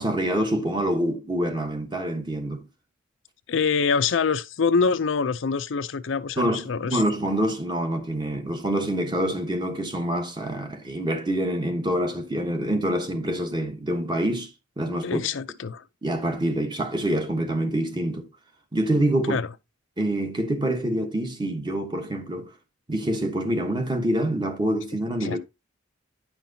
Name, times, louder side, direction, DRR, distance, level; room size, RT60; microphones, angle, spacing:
voice 1, 0.0-2.6 6.4-15.3 16.0-18.3 18.7-19.4 20.0-22.5 22.9-25.4, right 1 dB, 20° right, 1.1 m, -26 dB
voice 2, 3.5-7.0 15.0-15.8 19.3-19.5 25.2-25.4, left 5 dB, 65° left, 0.5 m, -25 dB
9.5 x 5.8 x 2.7 m
head